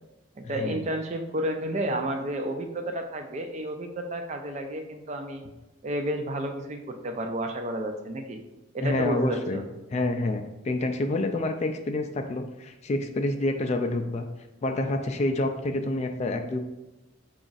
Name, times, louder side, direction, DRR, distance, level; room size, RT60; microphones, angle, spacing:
voice 1, 0.4-5.4 5.8-8.4 8.7-9.6, right 1 dB, 35° right, 5 dB, 0.4 m, -31 dB
voice 2, 8.8-9.6 9.9-14.3 14.6-16.6, left 2 dB, 35° left, 6 dB, 0.3 m, -28 dB
4.8 x 2.4 x 3.9 m, 0.96 s
head